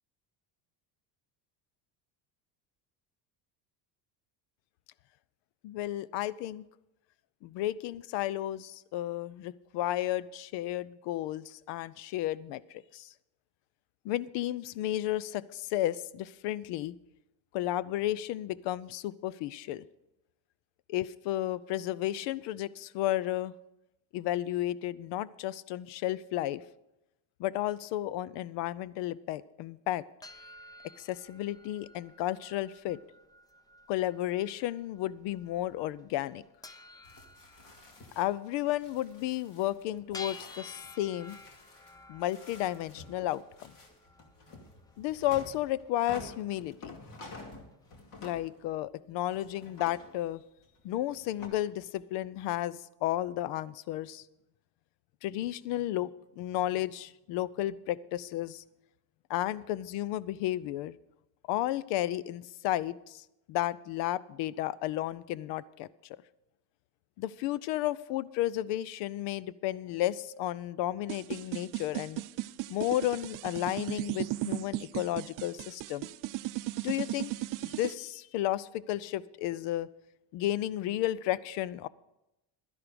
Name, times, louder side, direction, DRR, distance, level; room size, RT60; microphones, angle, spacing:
voice 1, 5.6-6.7 7.4-13.1 14.0-17.0 17.5-19.8 20.9-23.5 24.1-26.6 27.4-30.0 31.0-33.0 33.9-36.4 38.2-41.4 42.1-43.7 45.0-47.0 48.2-50.4 50.8-54.2 55.2-58.6 59.3-60.9 61.5-65.9 67.2-72.2 72.7-76.1 76.8-77.3 77.6-79.9 80.3-81.9, left 14 dB, 70° left, 20 dB, 0.6 m, -33 dB
sound 1, 30.2-48.1, left 2 dB, 10° left, 0.5 m, -53 dB
sound 2, 37.0-48.9 49.3-51.5, left 2 dB, 45° left, 2.5 m, -51 dB
sound 3, 71.1-77.9, right 18 dB, 50° right, 0.4 m, -36 dB
12.0 x 11.0 x 5.1 m, 0.90 s
cardioid pair, 130°, 45 cm